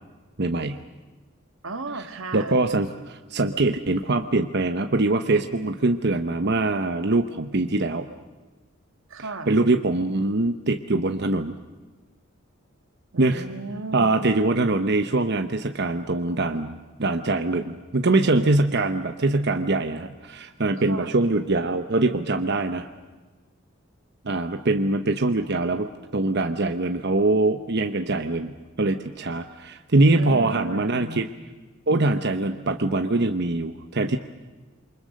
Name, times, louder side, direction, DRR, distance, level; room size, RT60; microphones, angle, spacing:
voice 1, 0.4-0.8 1.9-2.0 2.3-8.1 9.5-11.6 13.2-13.4 13.9-22.9 24.2-31.3 31.9-34.2, right 2 dB, 55° right, 7 dB, 1.0 m, -23 dB
voice 2, 1.6-2.6 9.1-9.6 13.1-14.3 20.9-21.2 30.2-31.2, right 3 dB, 85° right, 8 dB, 1.9 m, -34 dB
28.0 x 24.5 x 6.5 m, 1.3 s
head